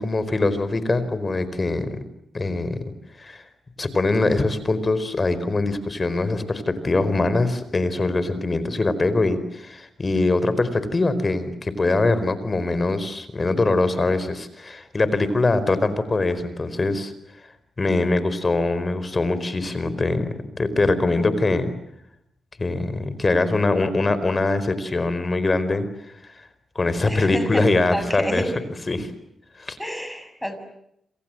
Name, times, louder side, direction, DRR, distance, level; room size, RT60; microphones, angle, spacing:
voice 1, 0.0-2.0 2.3-2.8 3.2-3.4 3.8-17.1 17.8-20.3 20.6-21.7 22.6-25.9 26.7-28.4 28.9-29.1 29.6-29.8, left 2 dB, 35° left, 14 dB, 4.6 m, -22 dB
voice 2, 27.0-28.5 29.8-30.6, equal, 5° left, 10 dB, 6.7 m, -29 dB
28.0 x 27.5 x 7.8 m, 0.76 s
cardioid pair, 65°, 0 cm